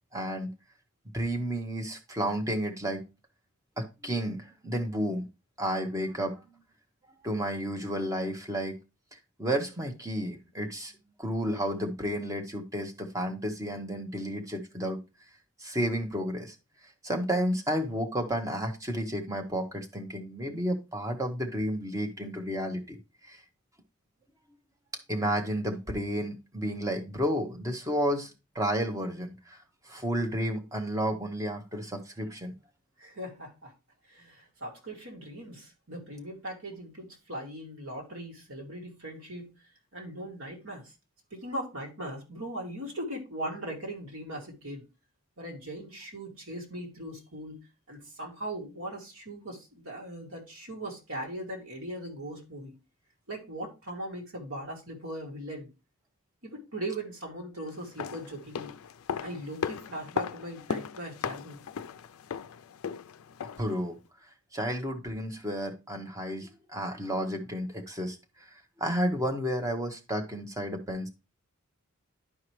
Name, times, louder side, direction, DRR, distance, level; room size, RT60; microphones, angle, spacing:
voice 1, 0.1-0.5 1.1-3.0 3.8-5.3 5.6-6.4 7.2-8.8 9.4-10.9 11.2-15.0 15.6-16.5 17.0-23.0 23.2-23.4 25.1-29.6 29.9-32.5 63.6-64.0 64.5-68.2 68.8-71.1, equal, 15° right, 3 dB, 1.0 m, -31 dB
voice 2, 33.0-33.7 34.1-39.5 39.9-40.9 41.3-44.8 45.4-47.6 47.9-52.7 53.3-55.7 56.4-58.7 59.2-61.6, right 1 dB, 70° right, -1 dB, 2.4 m, -39 dB
sound 1, 57.8-63.8 64.0-64.1, left 7 dB, 70° left, 0.4 m, -37 dB
11.0 x 4.7 x 3.1 m, 0.28 s
head